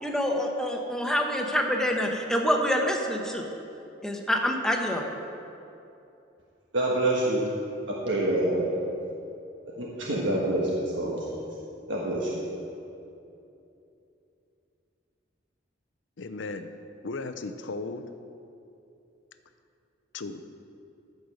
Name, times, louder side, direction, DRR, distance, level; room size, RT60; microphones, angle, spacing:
voice 1, 0.0-3.5 4.0-5.0, equal, 5° left, 1 dB, 1.0 m, -26 dB
voice 2, 6.7-7.5 8.0-8.7 9.8-11.3 11.9-12.6, right 1 dB, 75° right, -4 dB, 1.4 m, -26 dB
voice 3, 16.2-16.7 17.0-18.1 20.1-20.4, left 3 dB, 80° left, 10 dB, 0.6 m, -35 dB
14.5 x 5.3 x 6.4 m, 2.8 s
head